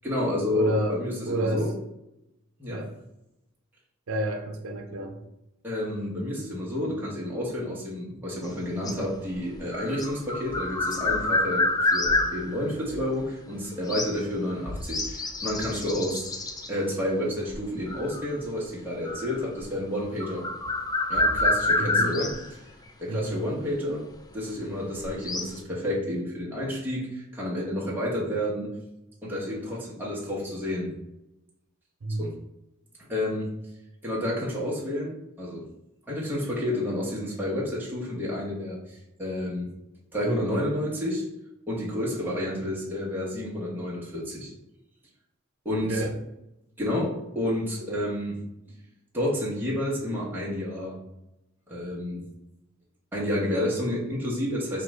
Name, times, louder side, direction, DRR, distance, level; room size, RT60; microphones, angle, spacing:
voice 1, 0.0-1.7 2.6-2.9 5.6-16.3 16.7-20.5 21.1-22.4 23.0-24.1 24.3-28.8 29.2-30.9 32.2-32.4 33.1-33.5 34.0-35.6 36.1-39.7 40.1-41.2 41.7-44.5 45.6-46.0 46.8-48.4 49.1-51.0 51.7-52.2 53.1-54.8, left 1 dB, 10° right, -6 dB, 1.0 m, -30 dB
voice 2, 0.5-1.0 1.3-1.6 2.7-2.9 4.1-5.2 21.8-22.1 23.1-23.4 32.0-32.2 45.7-46.1, right 1 dB, 80° right, 4 dB, 0.6 m, -29 dB
sound 1, 8.4-13.0 13.9-14.2 14.6-16.7 17.5-18.4 19.0-19.6 20.0-22.5 23.3-23.4 24.7-25.6, left 2 dB, 20° left, 0.4 m, -28 dB
4.6 x 2.4 x 3.1 m, 0.90 s
head